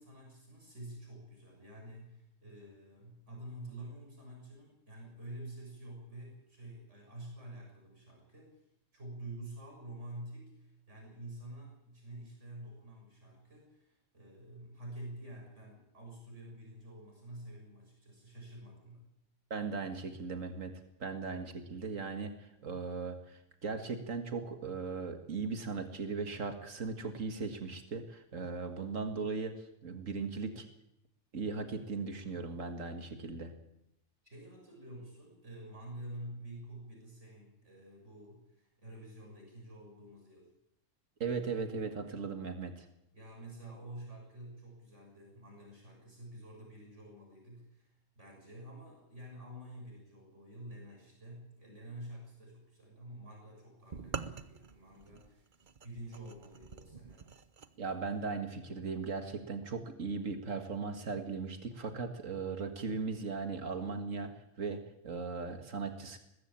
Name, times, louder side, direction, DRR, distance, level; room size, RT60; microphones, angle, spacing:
voice 1, 0.0-8.6 8.9-19.1 34.2-40.5 43.1-55.5 55.8-57.2, right 1 dB, 70° right, 0 dB, 7.2 m, -49 dB
voice 2, 19.5-20.7 21.0-30.7 31.3-33.5 41.2-42.9 57.8-66.2, right 4 dB, 85° right, 6 dB, 2.1 m, -38 dB
sound 1, 53.9-57.7, right 5 dB, 40° right, 1.0 m, -45 dB
20.0 x 15.5 x 8.7 m, 0.80 s
omnidirectional pair, 1.3 m